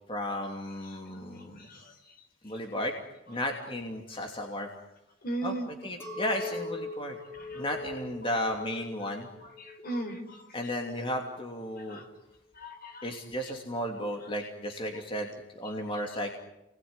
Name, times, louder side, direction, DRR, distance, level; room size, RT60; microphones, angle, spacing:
voice 1, 0.1-2.0 2.4-2.9 3.3-4.7 5.4-7.2 7.5-9.3 10.5-12.0 13.0-15.3 15.6-16.4, left 1 dB, 30° left, 2 dB, 2.8 m, -34 dB
voice 2, 1.6-1.9 5.2-5.7 7.4-7.6 9.6-10.4 11.9-12.0 12.6-13.1, right 1 dB, 50° left, 6 dB, 4.4 m, -37 dB
Chink clink, 6.0-11.4, left 2 dB, 10° left, 3.7 m, -41 dB
29.5 x 21.0 x 9.7 m, 0.92 s
head